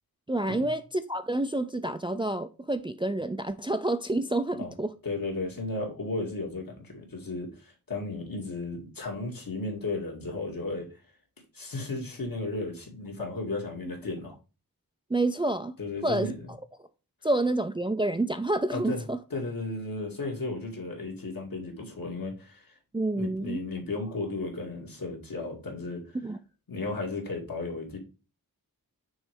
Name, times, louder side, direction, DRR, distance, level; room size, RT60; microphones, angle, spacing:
voice 1, 0.3-4.9 15.1-15.8 16.0-16.3 17.2-19.2 22.9-23.7 26.2-26.4, right 2 dB, 15° right, 0.3 m, -28 dB
voice 2, 5.0-10.9 11.5-14.3 15.8-16.3 18.7-19.0 19.3-22.7 23.1-26.2 26.7-28.0, left 3 dB, 65° left, 2.2 m, -34 dB
6.2 x 3.2 x 4.8 m
wide cardioid pair, 75°, 37 cm